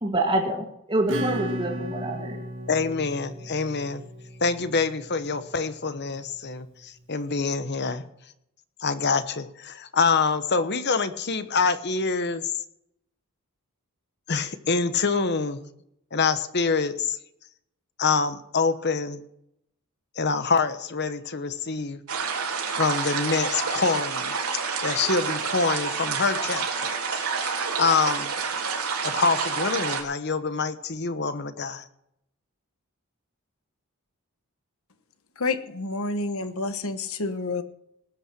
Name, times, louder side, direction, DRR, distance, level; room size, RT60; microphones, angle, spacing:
voice 1, 0.0-2.4, right 1 dB, 25° right, -4 dB, 2.2 m, -26 dB
Acoustic guitar / Strum, 1.1-5.4, equal, 55° right, 1.9 m, -34 dB
voice 2, 2.7-4.0 4.4-8.0 8.8-12.6 14.3-15.7 16.1-17.2 18.0-19.2 20.2-22.0 22.8-24.3 24.8-27.2 27.8-28.3 29.0-31.8, left 4 dB, 50° left, 11 dB, 1.0 m, -26 dB
sound 1, 22.1-30.0, right 5 dB, 85° right, 3.5 m, -28 dB
voice 3, 35.4-37.6, left 3 dB, 70° left, 10 dB, 1.2 m, -29 dB
19.5 x 8.7 x 6.1 m, 0.77 s
head